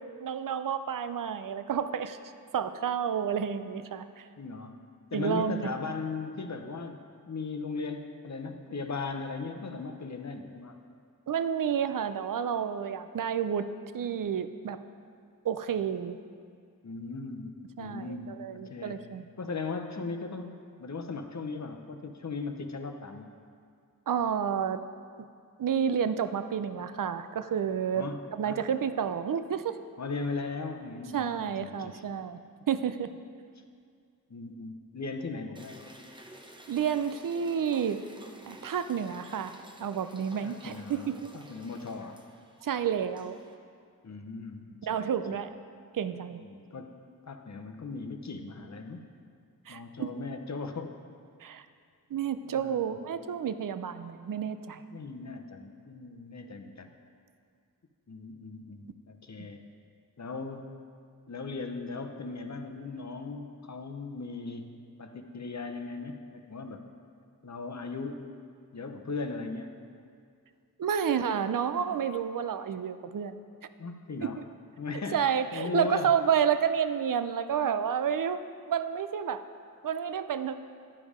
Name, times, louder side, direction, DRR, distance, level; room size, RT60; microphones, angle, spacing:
voice 1, 0.0-2.2 2.5-4.3 5.1-5.7 11.3-13.7 13.9-14.8 15.4-16.2 17.8-19.3 24.1-24.8 25.6-29.8 31.1-32.4 32.7-33.1 36.7-38.0 38.5-41.3 42.6-43.4 44.8-45.5 45.9-46.4 49.7-50.1 51.4-51.7 52.1-54.8 59.4-59.5 70.8-73.4 74.2-74.4 75.1-78.4 78.7-79.4 79.8-80.5, right 8 dB, 60° right, 11 dB, 0.5 m, -30 dB
voice 2, 4.4-4.8 5.1-7.0 7.3-10.8 16.8-19.0 19.4-20.5 20.8-23.3 27.9-28.2 28.4-28.6 30.0-32.0 34.3-35.8 40.4-42.2 44.0-45.4 46.5-47.0 47.2-49.0 49.7-50.9 52.5-53.0 54.9-56.9 58.1-59.6 60.2-60.7 61.3-66.8 67.4-68.2 68.7-69.7 73.8-74.4 74.8-76.1, left 4 dB, 50° left, 5 dB, 0.8 m, -38 dB
sound 1, 35.6-43.6, equal, 15° right, 0.8 m, -52 dB
11.0 x 5.2 x 4.9 m, 2.2 s
cardioid pair, 45°, 36 cm